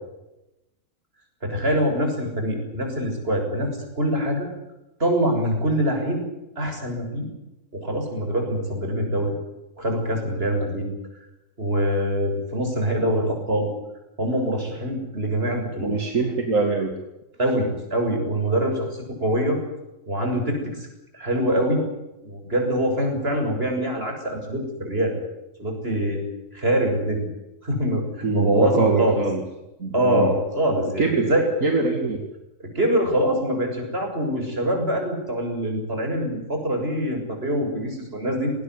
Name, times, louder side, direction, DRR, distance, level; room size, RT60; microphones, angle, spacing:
voice 1, 1.4-4.5 5.0-6.3 6.6-7.3 7.7-9.4 9.8-10.9 11.6-13.7 14.2-15.9 17.4-19.6 20.1-20.9 21.1-21.8 22.2-25.1 25.6-26.2 26.5-27.2 27.6-29.2 29.9-31.5 32.6-38.5, equal, 45° right, 3 dB, 7.2 m, -24 dB
voice 2, 15.8-16.9 28.2-29.4 29.8-30.3 31.0-31.3 31.6-32.2, right 3 dB, 75° right, 3 dB, 2.9 m, -23 dB
20.5 x 19.0 x 9.7 m, 0.94 s
omnidirectional pair, 1.4 m